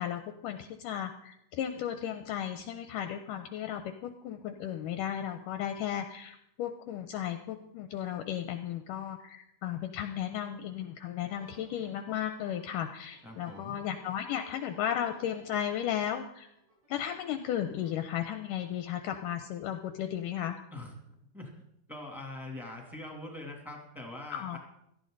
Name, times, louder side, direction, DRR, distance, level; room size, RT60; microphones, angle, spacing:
voice 1, 0.0-16.5 16.9-20.6 24.3-24.6, left 10 dB, 80° left, 8 dB, 2.1 m, -35 dB
sound 1, 11.3-18.5, right 2 dB, 85° right, 6.9 m, -59 dB
voice 2, 13.2-13.8 20.7-20.9 21.3-21.5 21.9-24.6, left 2 dB, ahead, 0 dB, 2.1 m, -43 dB
16.5 x 13.0 x 4.0 m, 0.76 s
omnidirectional pair, 4.2 m